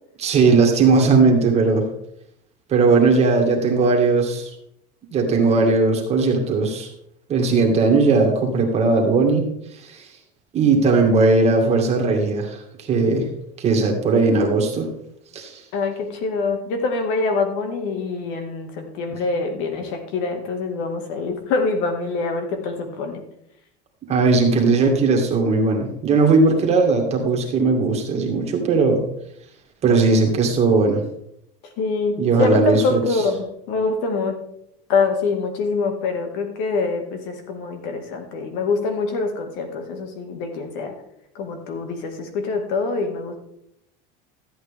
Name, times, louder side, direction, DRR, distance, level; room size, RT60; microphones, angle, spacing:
voice 1, 0.2-1.9 2.7-4.5 5.1-6.9 7.3-9.4 9.7-10.1 10.5-13.3 13.6-14.9 15.3-15.6 24.1-29.0 29.8-31.0 32.2-33.0, right 3 dB, 30° right, 1 dB, 2.2 m, -18 dB
voice 2, 15.7-23.2 31.8-33.4 33.7-34.4 34.9-40.9 41.3-43.3, left 4 dB, 65° left, 5 dB, 2.2 m, -24 dB
13.5 x 8.6 x 3.6 m, 0.74 s
cardioid pair, 145°, 20 cm